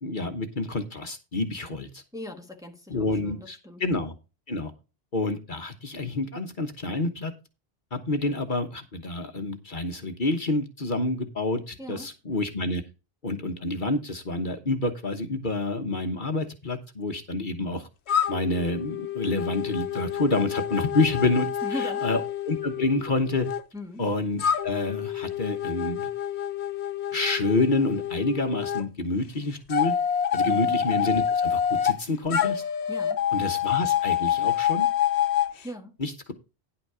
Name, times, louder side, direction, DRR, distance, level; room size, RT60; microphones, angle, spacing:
voice 1, 0.0-2.0 2.9-4.1 4.5-4.7 5.1-7.3 7.9-12.8 13.2-17.9 18.3-23.5 24.0-26.1 27.1-29.9 30.3-32.6 33.3-34.9 36.0-36.3, left 2 dB, 50° left, 1.3 m, -28 dB
voice 2, 2.1-3.8 11.8-12.1 21.6-22.1 23.7-24.0 30.4-30.7 32.9-33.2 35.6-36.0, left 1 dB, 5° right, 1.4 m, -39 dB
sound 1, 18.1-23.6 24.4-28.8 29.7-32.0 32.3-35.5, left 9 dB, 85° left, 1.1 m, -27 dB
10.5 x 6.0 x 4.9 m
omnidirectional pair, 1.1 m